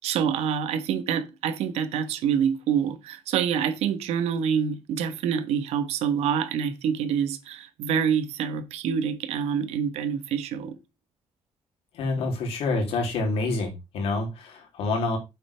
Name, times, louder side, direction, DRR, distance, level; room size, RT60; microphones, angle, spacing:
voice 1, 0.0-10.8, right 7 dB, 85° right, 1.5 m, -26 dB
voice 2, 11.9-15.2, left 3 dB, 70° left, 3.6 m, -27 dB
9.3 x 7.6 x 3.5 m
cardioid pair, 160°, 11 cm